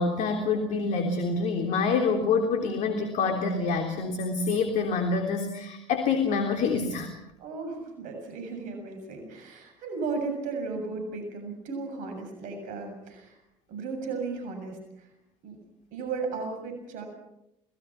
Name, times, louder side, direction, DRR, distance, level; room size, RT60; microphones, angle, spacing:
voice 1, 0.0-7.1, left 4 dB, 60° left, 4 dB, 3.4 m, -26 dB
voice 2, 7.4-13.4 13.7-15.1 15.4-15.6 15.9-17.0, right 4 dB, 65° right, 4 dB, 7.1 m, -35 dB
28.0 x 20.0 x 5.9 m, 0.84 s
hypercardioid pair, 65°, 14 cm